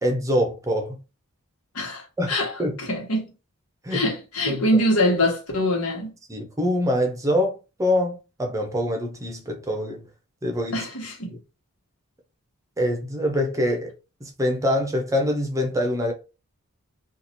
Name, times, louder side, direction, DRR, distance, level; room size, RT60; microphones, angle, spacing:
voice 1, 0.0-1.0 2.2-2.3 2.6-2.7 3.8-4.0 4.5-4.6 6.3-10.0 10.4-10.8 12.8-13.9 14.2-16.1, left 1 dB, 15° right, 0.6 m, -24 dB
voice 2, 1.7-2.5 2.8-3.3 3.9-6.1 10.7-11.4, left 1 dB, 75° left, 1.3 m, -24 dB
2.9 x 2.4 x 4.1 m
head